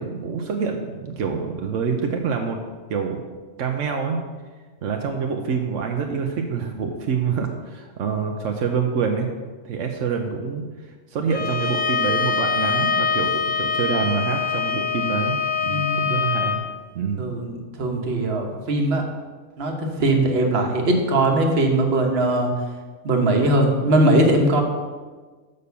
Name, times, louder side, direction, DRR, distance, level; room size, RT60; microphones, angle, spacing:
voice 1, 0.0-2.6 2.9-3.2 3.6-4.2 4.8-9.3 9.6-10.6 11.1-16.6 16.9-17.2, right 6 dB, 80° right, 3 dB, 1.1 m, -26 dB
Bowed string instrument, 11.3-16.6, left 6 dB, 80° left, 1.3 m, -24 dB
voice 2, 15.7-16.1 17.2-19.1 19.6-22.5 23.0-24.6, right 1 dB, 55° right, 2 dB, 1.3 m, -20 dB
6.7 x 5.4 x 6.8 m, 1.4 s
omnidirectional pair, 1.3 m